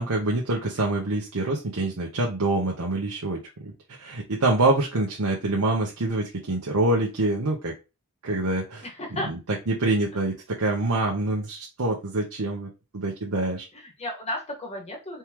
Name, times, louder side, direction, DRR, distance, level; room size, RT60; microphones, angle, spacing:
voice 1, 0.0-7.7 8.2-8.8 9.1-9.4 9.7-13.7, right 2 dB, 85° right, -1 dB, 1.0 m, -26 dB
voice 2, 8.8-9.3 13.7-15.2, left 1 dB, 30° left, 0 dB, 1.5 m, -33 dB
4.4 x 3.6 x 3.0 m, 0.28 s
head